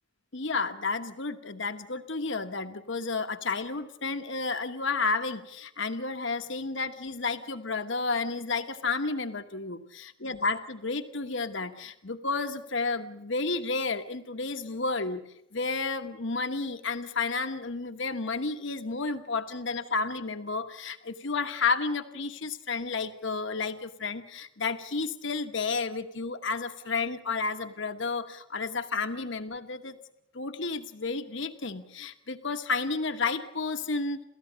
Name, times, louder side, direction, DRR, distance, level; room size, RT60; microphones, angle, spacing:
voice 1, 0.3-15.2 15.5-30.0 30.3-34.2, left 4 dB, 60° left, 8 dB, 1.2 m, -31 dB
30.0 x 14.5 x 8.6 m, 0.81 s
head